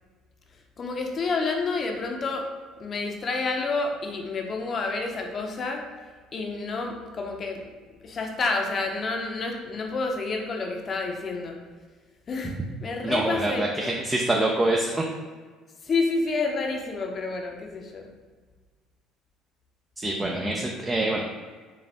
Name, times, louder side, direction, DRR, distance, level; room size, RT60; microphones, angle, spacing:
voice 1, 0.8-2.5 2.8-5.8 6.3-7.7 8.0-11.6 12.3-13.9 15.8-18.1, left 3 dB, 45° left, 2 dB, 0.7 m, -29 dB
voice 2, 13.0-15.0 20.0-21.3, right 2 dB, 20° right, -1 dB, 0.5 m, -25 dB
4.8 x 2.4 x 3.5 m, 1.5 s
hypercardioid pair, 70°, 0 cm